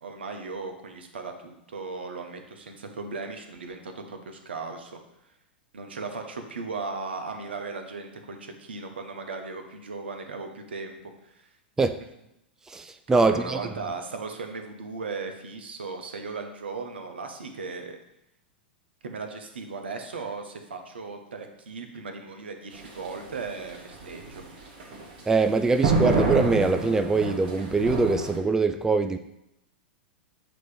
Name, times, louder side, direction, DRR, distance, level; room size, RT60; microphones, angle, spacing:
voice 1, 0.0-5.0 5.7-11.5 13.1-18.0 19.0-24.4, right 4 dB, 80° right, 5 dB, 1.0 m, -37 dB
voice 2, 12.7-13.6 25.3-29.2, right 3 dB, 10° right, 8 dB, 0.4 m, -23 dB
sound 1, 22.7-28.4, right 3 dB, 60° right, 1.4 m, -28 dB
7.8 x 3.0 x 4.9 m, 0.82 s
hypercardioid pair, 100°, 6 cm